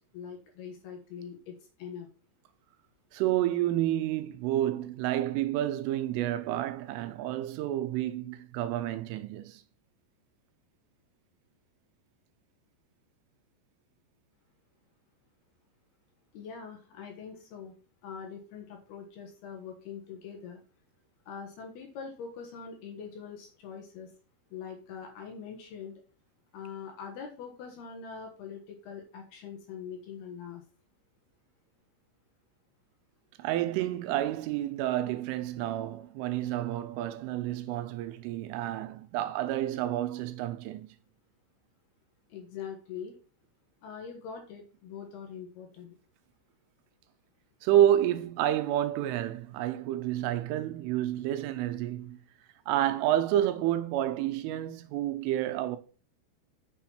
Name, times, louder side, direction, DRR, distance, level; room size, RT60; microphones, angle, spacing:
voice 1, 0.1-2.1 16.3-17.7 18.0-20.6 21.3-24.1 24.5-26.0 26.5-30.6 42.3-43.2 43.8-46.0, left 6 dB, 65° left, 2.8 m, -43 dB
voice 2, 3.1-9.6 33.4-40.9 47.6-52.2 52.7-55.8, right 12 dB, 85° right, 3.2 m, -29 dB
7.5 x 6.7 x 4.4 m
omnidirectional pair, 5.8 m